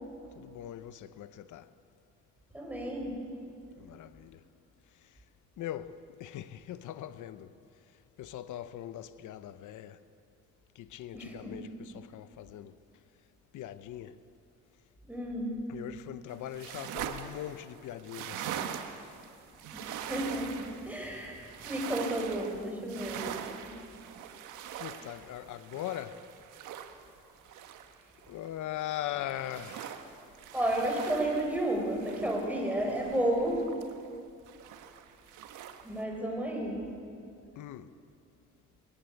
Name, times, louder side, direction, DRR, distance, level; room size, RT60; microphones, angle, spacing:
voice 1, 0.3-1.7 3.8-4.4 5.6-7.5 8.2-10.0 10.8-12.7 13.5-14.2 15.7-18.8 24.8-26.2 28.3-30.0 37.6-37.9, left 12 dB, 80° left, 0.9 m, -41 dB
voice 2, 2.5-3.2 11.1-11.6 15.1-15.5 19.7-23.3 23.6-23.7 30.5-33.6 35.8-36.8, right 1 dB, 5° right, 6.5 m, -32 dB
sound 1, 16.3-28.5 28.8-34.2 34.5-36.0, right 9 dB, 85° right, 1.4 m, -43 dB
20.5 x 18.5 x 8.3 m
cardioid pair, 90°, 30 cm